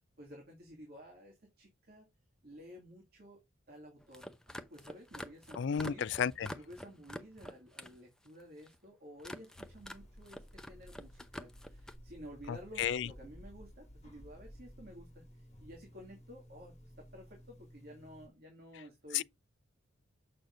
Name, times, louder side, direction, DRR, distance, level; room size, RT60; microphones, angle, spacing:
voice 1, 0.2-2.1 2.4-3.4 3.7-6.1 6.5-19.2, equal, 50° right, 2.3 m, -53 dB
sound 1, 4.0-8.0 8.3-8.8 9.2-10.0 10.3-12.0, equal, 5° left, 0.6 m, -47 dB
voice 2, 5.6-6.5 12.8-13.1 19.1-19.2, left 8 dB, 60° left, 0.4 m, -32 dB
sound 2, 9.5-18.3, equal, 35° left, 1.7 m, -55 dB
7.5 x 6.5 x 2.6 m
head